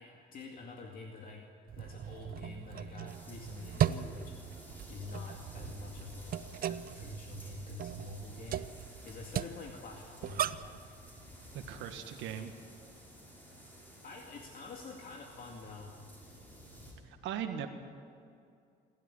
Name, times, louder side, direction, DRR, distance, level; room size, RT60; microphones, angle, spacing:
voice 1, 0.0-1.4 1.7-8.7 9.0-10.9 14.0-15.9, left 3 dB, 50° left, 1 dB, 2.3 m, -47 dB
sound 1, 1.7-10.8, right 10 dB, 50° right, 0.7 m, -38 dB
sound 2, 3.1-16.9, equal, 10° left, 6.4 m, -53 dB
voice 2, 11.5-12.5 17.0-17.7, right 9 dB, 85° right, 5 dB, 1.6 m, -39 dB
27.5 x 12.5 x 9.9 m, 2.4 s
cardioid pair, 130°, 19 cm